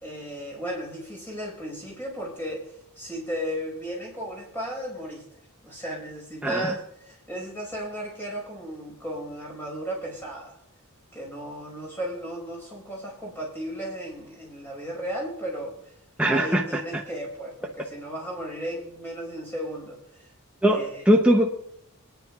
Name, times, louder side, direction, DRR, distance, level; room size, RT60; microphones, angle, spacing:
voice 1, 0.0-5.2 5.6-10.6 11.1-15.9 16.3-20.3 20.7-21.0, equal, 10° left, -2 dB, 5.0 m, -35 dB
voice 2, 6.4-6.8 16.2-17.0 20.6-20.8 21.1-21.5, equal, 5° right, 0 dB, 0.7 m, -21 dB
25.0 x 9.9 x 2.4 m, 0.76 s
head